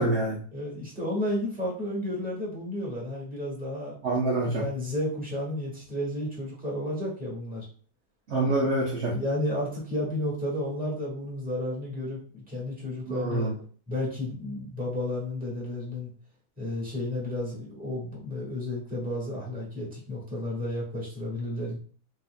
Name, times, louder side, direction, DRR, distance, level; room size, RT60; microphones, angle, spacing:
voice 1, 0.0-0.4 4.0-4.6 8.3-9.1 13.1-13.5, right 2 dB, 75° right, -3 dB, 0.6 m, -26 dB
voice 2, 0.5-4.0 4.6-7.7 9.0-13.5 13.9-16.1 16.6-21.8, left 1 dB, 5° right, -5 dB, 1.3 m, -32 dB
5.4 x 2.7 x 2.2 m, 0.43 s
omnidirectional pair, 2.1 m